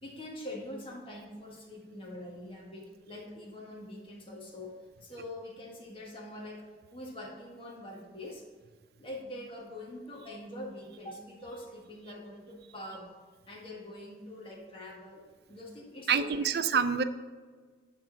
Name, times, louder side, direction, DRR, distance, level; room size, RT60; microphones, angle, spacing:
voice 1, 0.0-4.7 5.0-6.6 6.9-8.4 9.0-13.1 13.5-16.8, left 1 dB, 30° left, -2 dB, 1.4 m, -44 dB
voice 2, 16.1-17.0, right 6 dB, 60° right, 11 dB, 0.4 m, -26 dB
10.0 x 3.7 x 5.0 m, 1.5 s
head